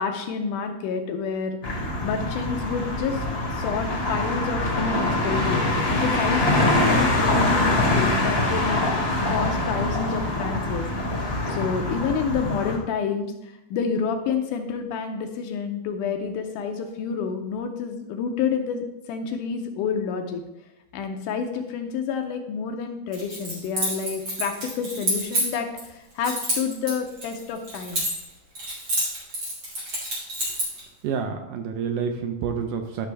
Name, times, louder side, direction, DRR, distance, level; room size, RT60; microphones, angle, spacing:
voice 1, 0.0-1.6 2.0-8.8 9.3-20.4 20.9-28.0, left 6 dB, 75° left, 5 dB, 2.0 m, -29 dB
sound 1, 1.6-12.8, left 2 dB, 55° left, 0.6 m, -24 dB
Keys jangling, 23.1-25.9 26.2-28.3 28.6-30.8, right 1 dB, 40° right, 3.8 m, -28 dB
voice 2, 31.0-33.1, right 6 dB, 80° right, 5 dB, 1.9 m, -28 dB
11.5 x 5.9 x 3.3 m, 0.92 s
omnidirectional pair, 4.0 m